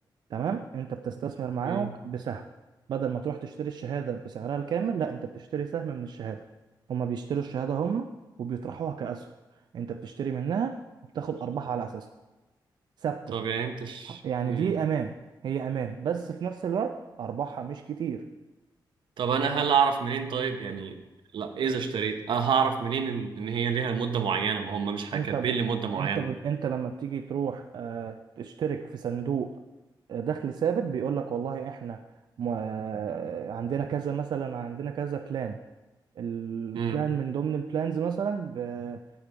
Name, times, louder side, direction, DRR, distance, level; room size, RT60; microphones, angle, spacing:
voice 1, 0.3-2.4 2.9-6.4 6.9-8.1 8.4-9.3 9.7-10.8 11.1-12.1 13.0-13.4 14.1-15.1 15.4-18.2 25.1-25.6 25.9-29.5 30.1-32.0 32.4-35.6 36.2-39.0, right 7 dB, 60° right, 6 dB, 0.4 m, -31 dB
voice 2, 13.3-14.2 14.5-14.7 19.2-21.0 21.3-26.2 36.7-37.0, right 6 dB, 90° right, 6 dB, 0.9 m, -28 dB
8.7 x 8.5 x 4.6 m, 1.1 s
wide cardioid pair, 180°, 8 cm